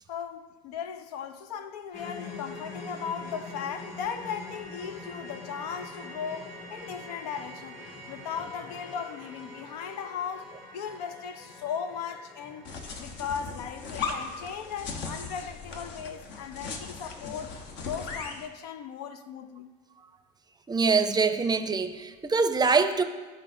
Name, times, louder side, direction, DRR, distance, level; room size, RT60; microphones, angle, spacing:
voice 1, 0.1-7.8 8.1-12.7 13.0-17.5 17.8-19.7, left 7 dB, 75° left, 0.5 m, -37 dB
sound 1, 1.9-16.1 16.4-16.6 17.0-17.1, left 2 dB, 35° left, 2.1 m, -44 dB
sound 2, 12.6-18.5, left 4 dB, 55° left, 1.0 m, -38 dB
voice 2, 20.7-23.0, right 4 dB, 20° right, 0.6 m, -24 dB
13.0 x 4.4 x 2.6 m
hypercardioid pair, 70°, 21 cm